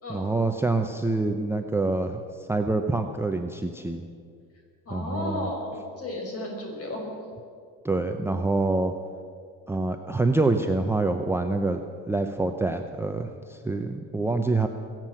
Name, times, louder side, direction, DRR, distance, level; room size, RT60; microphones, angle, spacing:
voice 1, 0.1-4.0 4.9-5.5 7.8-8.9 9.7-11.8 12.1-14.7, right 2 dB, 5° right, 5 dB, 0.7 m, -26 dB
voice 2, 4.9-7.1, left 1 dB, 45° left, 0 dB, 5.3 m, -33 dB
22.5 x 7.6 x 7.6 m, 2.2 s
cardioid pair, 115°, 33 cm